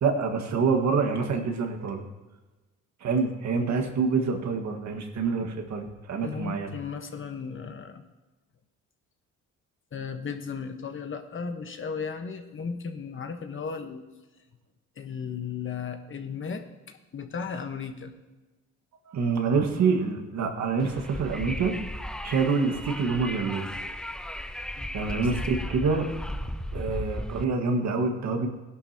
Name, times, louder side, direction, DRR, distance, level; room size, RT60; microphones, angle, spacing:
voice 1, 0.0-2.0 3.0-6.7 19.1-21.7 22.2-23.7 24.9-26.1 26.7-28.5, right 4 dB, 65° right, 4 dB, 1.7 m, -26 dB
voice 2, 6.2-8.0 9.9-14.0 15.0-18.1 24.8-25.0, left 6 dB, 40° left, 7 dB, 1.2 m, -35 dB
Wind, 20.8-27.5, left 1 dB, 5° left, 0.5 m, -35 dB
16.0 x 11.0 x 2.9 m, 1.2 s
cardioid pair, 90°, 30 cm